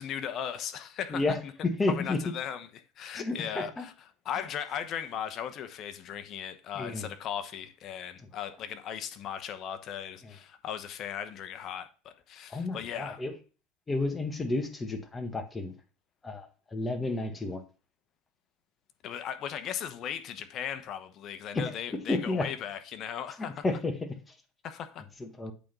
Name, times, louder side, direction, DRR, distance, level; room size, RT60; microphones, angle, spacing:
voice 1, 0.0-1.5 1.9-3.9 4.2-13.2 19.0-23.6 24.6-25.0, left 9 dB, 45° left, 1.0 m, -37 dB
voice 2, 1.1-2.2 3.1-3.9 6.7-7.1 10.2-10.3 12.5-13.3 13.9-15.7 16.2-17.6 21.5-21.6 22.1-22.5 23.4-24.1 25.2-25.5, left 2 dB, 15° left, 1.5 m, -31 dB
8.4 x 3.8 x 6.1 m
supercardioid pair, 110°, 0 cm